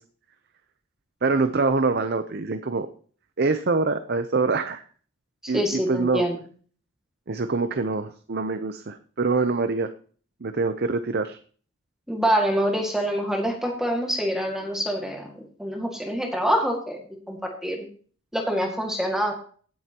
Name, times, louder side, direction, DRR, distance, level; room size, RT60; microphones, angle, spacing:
voice 1, 1.2-2.9 3.4-4.8 5.5-6.2 7.3-9.9 10.4-11.4, right 3 dB, 50° right, 9 dB, 0.6 m, -25 dB
voice 2, 5.4-6.4 12.1-17.0 17.3-17.9 18.3-19.3, equal, ahead, 1 dB, 1.9 m, -25 dB
17.0 x 7.9 x 2.9 m, 0.43 s
head